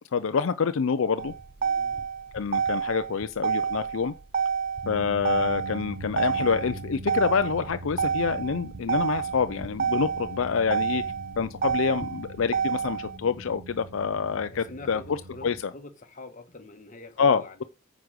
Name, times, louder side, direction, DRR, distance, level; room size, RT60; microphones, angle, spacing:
voice 1, 0.1-1.3 2.3-4.1 4.9-11.0 11.4-15.7 17.2-17.6, left 6 dB, 65° left, 0.5 m, -27 dB
Motor vehicle (road), 1.2-13.2, right 6 dB, 45° right, 0.6 m, -29 dB
voice 2, 1.6-2.1 14.5-17.6, left 2 dB, 35° left, 1.4 m, -45 dB
sound 1, 4.8-15.6, right 1 dB, 70° right, 1.2 m, -42 dB
9.5 x 5.0 x 6.2 m
head